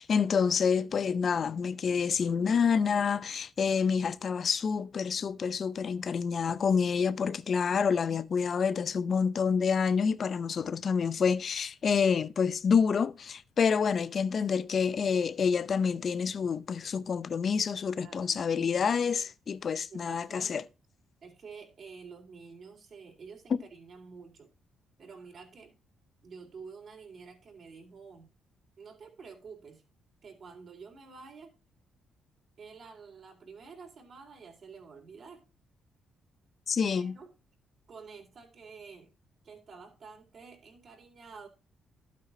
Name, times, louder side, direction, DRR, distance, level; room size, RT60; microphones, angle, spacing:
voice 1, 0.0-20.6 23.5-23.6 36.7-37.2, left 6 dB, 50° left, 0.6 m, -28 dB
voice 2, 18.0-18.7 19.9-20.5 21.2-24.5 25.0-25.7 26.2-28.3 28.8-29.8 30.2-31.6 32.6-35.4 36.9-37.3 37.9-39.1 39.4-41.5, right 5 dB, 50° right, 3.8 m, -49 dB
12.0 x 8.6 x 2.8 m
cardioid pair, 90°, 0 cm